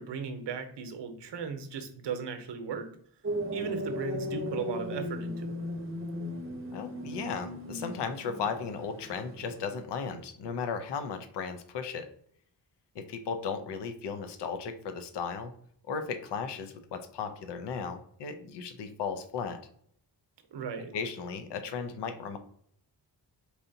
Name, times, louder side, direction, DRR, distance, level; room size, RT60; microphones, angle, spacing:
voice 1, 0.0-2.9 3.5-5.6 20.5-20.9, right 6 dB, 70° right, 7 dB, 0.8 m, -37 dB
sound 1, 3.2-9.8, left 1 dB, 30° right, 0.7 m, -37 dB
voice 2, 6.7-12.1 13.0-15.5 15.9-19.6 20.9-22.4, left 6 dB, 65° left, 8 dB, 0.6 m, -36 dB
4.7 x 2.8 x 2.7 m, 0.64 s
cardioid pair, 80°, 44 cm